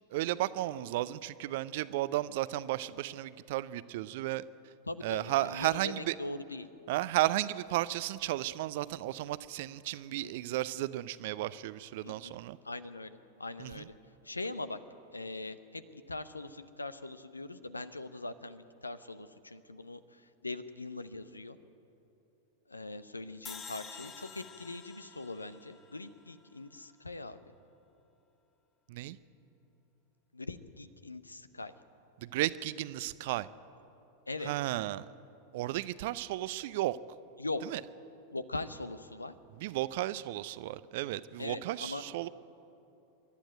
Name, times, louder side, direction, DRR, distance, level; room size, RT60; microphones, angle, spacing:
voice 1, 0.1-4.4 5.0-6.1 6.9-12.6 13.6-13.9 28.9-29.2 32.2-33.5 34.4-35.1 35.5-37.0 37.6-37.8 39.6-42.3, right 16 dB, 50° right, 17 dB, 0.5 m, -34 dB
voice 2, 4.9-6.7 10.2-10.3 12.0-12.3 12.6-14.0 14.2-14.8 15.1-21.6 22.7-27.4 30.3-31.7 34.3-34.5 37.4-37.6 38.3-39.3 41.4-42.0, left 2 dB, 80° left, 13 dB, 0.8 m, -41 dB
sound 1, 23.4-26.7, left 6 dB, 25° left, 1.3 m, -49 dB
25.5 x 11.5 x 9.3 m, 2.9 s
figure-of-eight pair, 90°, 0 cm